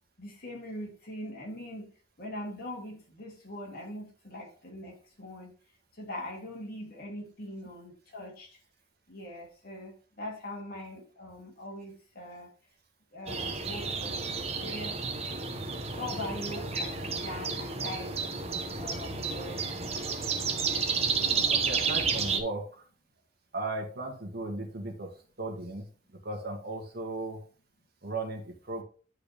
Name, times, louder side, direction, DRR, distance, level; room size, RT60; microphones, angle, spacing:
voice 1, 0.2-1.9 2.2-5.5 5.9-8.6 9.1-12.5 13.1-15.0 16.0-18.2 18.8-19.6, left 1 dB, 55° left, -1 dB, 2.7 m, -41 dB
sound 1, 13.3-22.4, right 5 dB, 35° right, 0.9 m, -31 dB
voice 2, 21.0-22.6 23.5-25.1 25.4-25.8 26.2-27.4 28.0-28.8, right 2 dB, 55° right, 2 dB, 1.8 m, -36 dB
10.0 x 4.8 x 3.4 m, 0.40 s
head